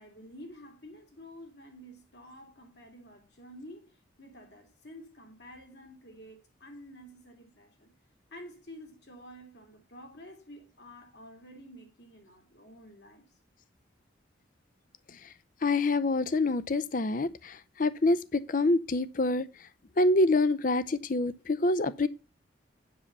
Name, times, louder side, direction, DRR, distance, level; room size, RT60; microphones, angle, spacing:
voice 1, 0.0-7.9 8.3-13.2, equal, 60° left, 2.7 m, -50 dB
voice 2, 15.6-19.5 20.0-22.1, left 2 dB, 45° left, 0.5 m, -26 dB
7.6 x 7.1 x 5.5 m
head